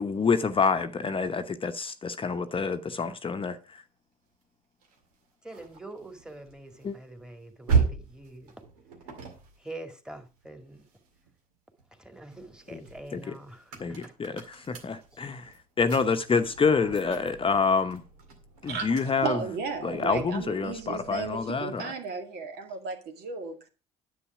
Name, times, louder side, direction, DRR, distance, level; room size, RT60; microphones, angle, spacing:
voice 1, 0.0-3.8 6.8-7.0 12.7-12.8 13.1-13.4 13.8-18.0 18.6-19.4 19.8-21.9, left 5 dB, 30° left, 0.9 m, -27 dB
sound 1, 4.8-11.3 11.8-21.6, right 5 dB, 80° right, 2.1 m, -36 dB
voice 2, 5.4-8.5 9.6-10.8 11.9-14.1 16.6-16.9, right 2 dB, 5° right, 2.1 m, -45 dB
voice 3, 19.2-23.7, right 5 dB, 60° right, 2.1 m, -34 dB
10.0 x 7.8 x 4.8 m
hypercardioid pair, 55°, 19 cm